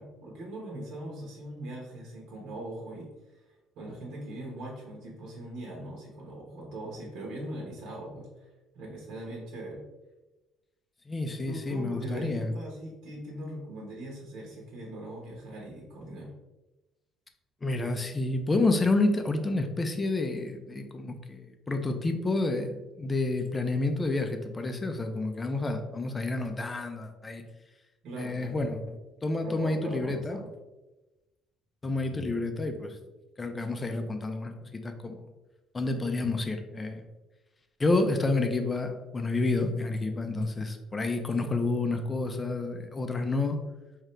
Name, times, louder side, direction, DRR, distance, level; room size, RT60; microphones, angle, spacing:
voice 1, 0.0-3.4 3.8-8.5 8.7-9.9 11.5-16.3 28.0-28.5 29.4-30.5, right 1 dB, 70° right, -2 dB, 1.2 m, -40 dB
voice 2, 11.1-12.5 17.6-27.4 28.2-30.4 31.8-33.0 33.4-35.2 35.7-37.0 37.8-43.6, left 2 dB, 15° left, 6 dB, 0.4 m, -29 dB
4.9 x 2.8 x 3.2 m, 1.1 s
cardioid pair, 155°, 0 cm